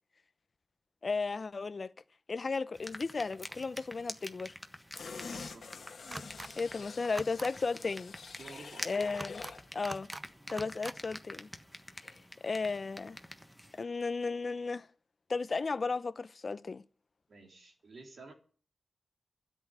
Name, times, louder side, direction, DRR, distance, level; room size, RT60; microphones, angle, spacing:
voice 1, 1.0-1.9 2.3-4.5 6.6-8.1 8.8-9.4 9.7-10.1 10.5-11.5 12.0-13.2 13.8-14.9 15.3-16.8, left 4 dB, 45° left, 0.6 m, -34 dB
sound 1, 2.7-13.8, equal, ahead, 1.3 m, -48 dB
sound 2, 4.9-9.7 10.0-10.2, left 5 dB, 65° left, 1.5 m, -47 dB
voice 2, 5.3-5.8 6.2-6.3 8.4-8.9 17.3-18.3, right 3 dB, 60° right, 3.7 m, -52 dB
sound 3, 6.1-6.5 7.0-7.5 9.1-9.5 9.8-10.2 10.5-11.0, right 2 dB, 25° right, 0.7 m, -43 dB
12.5 x 8.3 x 9.8 m
cardioid pair, 80°, 0 cm